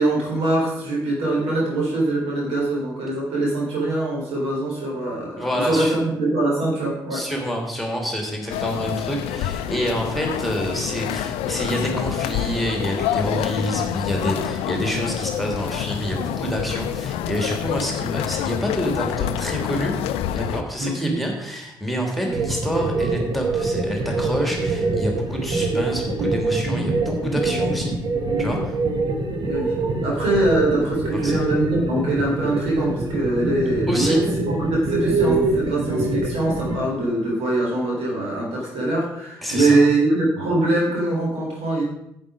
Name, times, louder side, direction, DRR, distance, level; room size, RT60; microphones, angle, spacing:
voice 1, 0.0-7.2 20.8-21.2 22.2-22.3 29.4-29.7 30.0-41.8, right 2 dB, 60° right, -3 dB, 3.9 m, -23 dB
voice 2, 5.4-6.0 7.1-19.9 20.3-27.9 28.4-28.8 31.2-31.4 33.9-34.2 39.4-39.8, equal, ahead, 1 dB, 2.9 m, -27 dB
sound 1, 8.5-20.6, left 11 dB, 60° left, 0.5 m, -27 dB
sound 2, 22.3-36.8, right 2 dB, 40° right, 1.7 m, -24 dB
11.0 x 8.0 x 5.0 m, 0.83 s
figure-of-eight pair, 40°, 11 cm